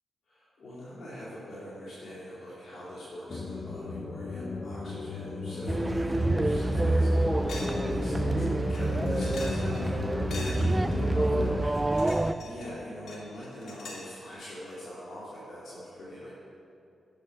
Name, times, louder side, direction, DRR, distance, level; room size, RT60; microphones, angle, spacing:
voice 1, 0.2-16.3, equal, 70° left, -9 dB, 2.9 m, -43 dB
sound 1, 3.3-11.6, left 3 dB, 50° left, 0.9 m, -35 dB
sound 2, 5.7-12.3, right 2 dB, 20° right, 0.4 m, -27 dB
sound 3, 6.2-6.3 6.7-6.8 7.5-7.8 8.1-8.2 8.7-9.9 10.3-11.0 11.7-12.7 13.1-14.1, left 2 dB, 85° left, 2.1 m, -44 dB
11.0 x 8.6 x 6.5 m, 2.5 s
cardioid pair, 75°, 0 cm